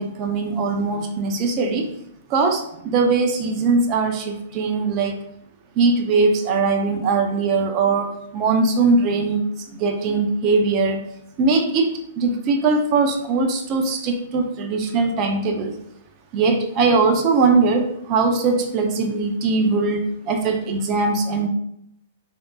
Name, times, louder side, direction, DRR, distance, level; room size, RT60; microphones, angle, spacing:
voice 1, 0.0-1.9 2.3-5.2 5.8-9.4 9.7-11.0 11.4-15.8 16.3-21.5, right 4 dB, 40° right, 4 dB, 0.6 m, -20 dB
3.4 x 2.7 x 2.3 m, 0.76 s
hypercardioid pair, 120°, 0 cm